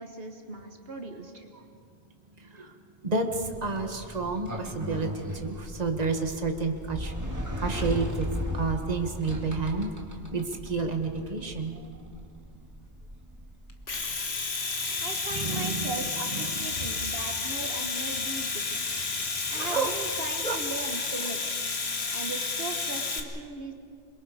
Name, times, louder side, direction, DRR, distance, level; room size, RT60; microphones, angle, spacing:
voice 1, 0.0-1.5 15.0-18.9 19.5-21.4 22.1-23.7, right 3 dB, 65° right, 4 dB, 1.5 m, -38 dB
voice 2, 2.4-2.7 3.0-9.9 10.3-11.9 15.3-15.9 16.3-16.9 19.4-19.9 20.4-20.6, right 3 dB, 40° right, 4 dB, 1.6 m, -31 dB
Sliding door, 3.4-14.0, equal, 15° right, 2.1 m, -37 dB
Domestic sounds home sounds, 13.7-23.2, left 4 dB, 75° left, 1.8 m, -31 dB
27.5 x 23.0 x 4.9 m, 2.3 s
omnidirectional pair, 1.1 m